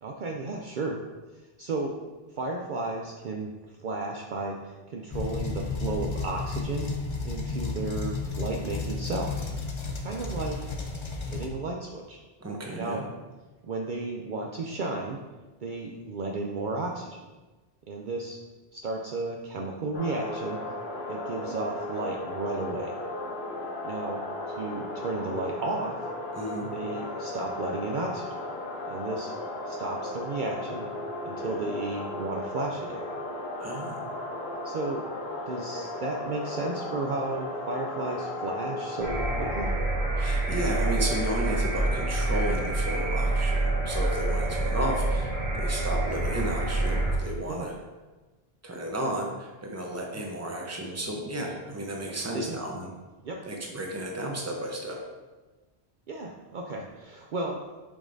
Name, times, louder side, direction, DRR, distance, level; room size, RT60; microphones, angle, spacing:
voice 1, 0.0-1.0 1.6-1.9 2.4-3.5 3.8-6.9 7.2-9.5 10.0-10.6 11.2-12.2 12.8-13.0 13.6-15.2 15.6-17.3 17.9-18.4 18.7-20.6 21.1-22.9 23.8-26.0 26.7-28.3 28.9-29.3 29.7-30.9 31.2-33.0 34.6-35.1 35.5-39.7 47.4-47.7 52.3-52.6 53.2-53.4 56.1-57.6, right 3 dB, 55° right, 0 dB, 0.6 m, -33 dB
sound 1, 5.1-11.5, left 3 dB, 35° left, 0.5 m, -33 dB
voice 2, 12.4-13.0 26.3-26.7 33.6-34.1 40.2-47.7 48.6-52.9 53.4-55.0, right 1 dB, 15° right, 0 dB, 0.8 m, -33 dB
sound 2, 19.9-39.7, left 2 dB, 75° left, 1.3 m, -35 dB
sound 3, 39.0-47.1, right 2 dB, 85° right, 1.6 m, -27 dB
7.0 x 5.2 x 2.6 m, 1.2 s
omnidirectional pair, 1.0 m